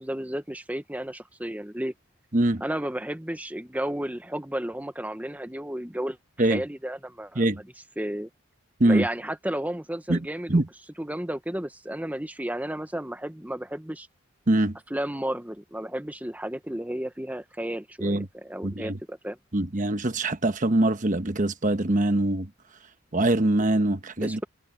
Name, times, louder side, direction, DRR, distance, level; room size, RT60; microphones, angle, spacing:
voice 1, 0.0-1.9 2.6-6.2 6.5-8.3 8.8-10.6 11.0-14.1 14.9-19.4 24.2-24.4, right 1 dB, 10° right, 0.9 m, -33 dB
voice 2, 10.1-10.7 14.5-14.8 18.0-18.3 18.6-19.0 19.5-22.5 23.1-24.4, right 1 dB, 40° right, 1.1 m, -23 dB
head